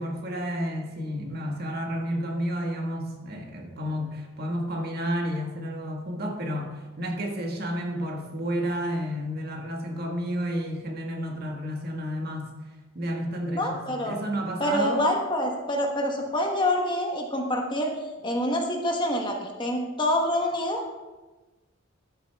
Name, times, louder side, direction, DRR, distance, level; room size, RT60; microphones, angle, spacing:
voice 1, 0.0-12.5 12.9-15.1, equal, 45° right, 2 dB, 1.5 m, -31 dB
voice 2, 13.5-14.2 14.6-17.9 18.2-20.8, left 1 dB, 20° left, 2 dB, 1.1 m, -26 dB
12.5 x 8.7 x 3.4 m, 1.2 s
head